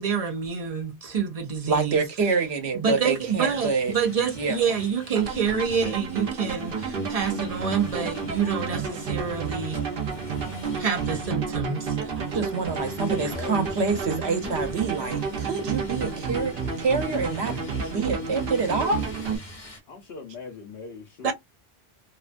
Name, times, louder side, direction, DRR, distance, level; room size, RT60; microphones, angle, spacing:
voice 1, 0.0-2.0 2.7-9.8 10.8-12.1 13.2-13.3 21.2-21.3, right 6 dB, 45° right, 0.6 m, -27 dB
voice 2, 1.7-3.9 4.3-4.7 12.2-17.6 17.9-19.0, right 4 dB, 90° right, 1.1 m, -26 dB
sound 1, 3.2-19.8, right 1 dB, 45° left, 1.1 m, -43 dB
sound 2, 5.1-19.4, right 5 dB, 60° right, 0.9 m, -31 dB
voice 3, 12.8-13.7 19.9-21.3, left 4 dB, 70° left, 1.0 m, -40 dB
2.7 x 2.2 x 2.5 m
omnidirectional pair, 1.1 m